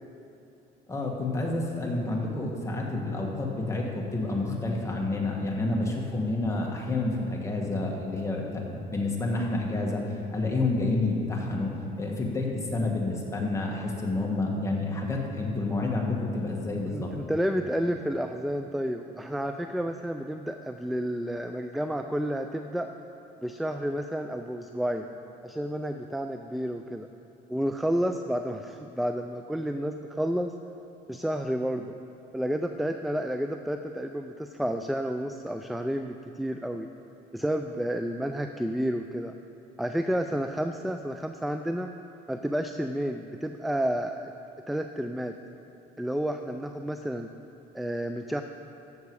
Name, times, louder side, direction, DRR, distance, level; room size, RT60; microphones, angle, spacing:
voice 1, 0.9-17.1, left 2 dB, 15° left, -2 dB, 1.8 m, -29 dB
voice 2, 16.9-22.9 23.4-25.1 25.4-27.1 27.5-30.5 31.1-31.9 32.3-36.9 37.3-39.3 39.8-41.9 42.3-44.3 44.7-45.4 46.0-47.3 47.7-48.4, equal, ahead, 6 dB, 0.3 m, -30 dB
14.0 x 6.8 x 4.8 m, 2.8 s
cardioid pair, 110°, 17 cm